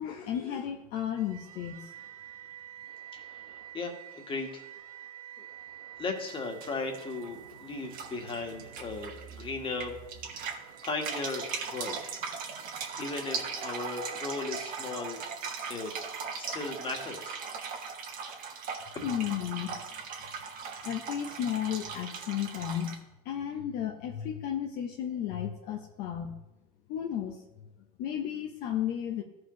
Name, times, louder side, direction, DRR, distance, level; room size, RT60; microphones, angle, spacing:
voice 1, 0.0-1.9 19.0-19.8 20.8-23.0 23.2-26.4 26.9-27.4 28.0-29.2, left 10 dB, 60° left, 2 dB, 0.9 m, -33 dB
sound 1, 1.2-16.3, right 10 dB, 85° right, 0.9 m, -49 dB
voice 2, 3.1-4.6 6.0-10.0 10.8-12.0 12.4-12.7 13.0-15.2 15.7-15.9 16.3-17.4 18.9-19.1, left 3 dB, 30° left, 2 dB, 1.7 m, -37 dB
sound 2, 6.2-6.3 6.6-7.5 7.9-9.4 9.8-22.9, right 5 dB, 50° right, 1.5 m, -39 dB
14.0 x 4.8 x 3.2 m, 1.0 s
supercardioid pair, 100°, 18 cm